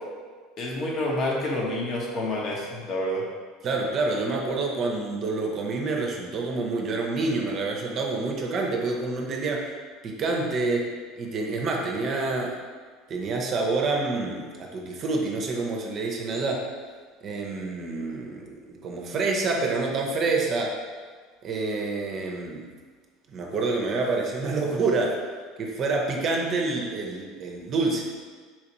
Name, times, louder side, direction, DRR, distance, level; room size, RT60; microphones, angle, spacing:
voice 1, 0.6-3.2, left 1 dB, 50° left, -3 dB, 1.0 m, -28 dB
voice 2, 3.6-9.7 10.0-10.9 11.2-12.6 13.1-16.7 17.2-20.8 21.4-22.6 23.3-25.2 25.6-28.1, right 3 dB, 45° right, 0 dB, 0.6 m, -27 dB
4.4 x 2.5 x 3.0 m, 1.6 s
hypercardioid pair, 80°, 0 cm